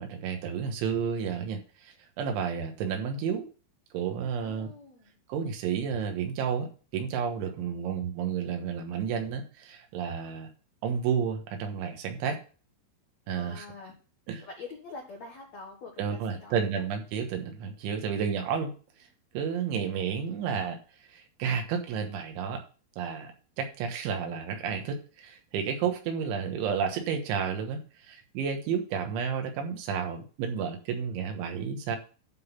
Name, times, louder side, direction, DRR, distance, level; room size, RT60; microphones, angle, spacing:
voice 1, 0.0-3.5 3.9-4.7 5.3-10.5 10.8-12.4 13.3-13.7 14.3-14.4 16.0-18.7 19.3-20.8 21.1-22.6 23.0-23.3 23.6-32.0, right 7 dB, 75° right, 5 dB, 3.6 m, -31 dB
voice 2, 4.4-5.2 7.6-7.8 13.3-13.9 14.4-16.8, left 4 dB, 70° left, 0 dB, 1.6 m, -45 dB
12.0 x 4.0 x 7.3 m, 0.38 s
omnidirectional pair, 5.7 m